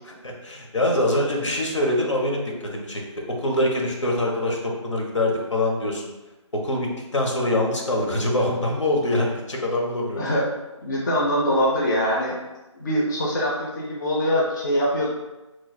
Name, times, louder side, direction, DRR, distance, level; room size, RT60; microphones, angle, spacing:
voice 1, 0.2-6.0 6.5-10.3, left 1 dB, 70° left, -1 dB, 0.9 m, -24 dB
voice 2, 10.1-10.5 10.8-12.4 12.8-15.1, equal, 40° left, -4 dB, 0.6 m, -23 dB
3.0 x 2.0 x 4.1 m, 1.1 s
figure-of-eight pair, 150°, 16 cm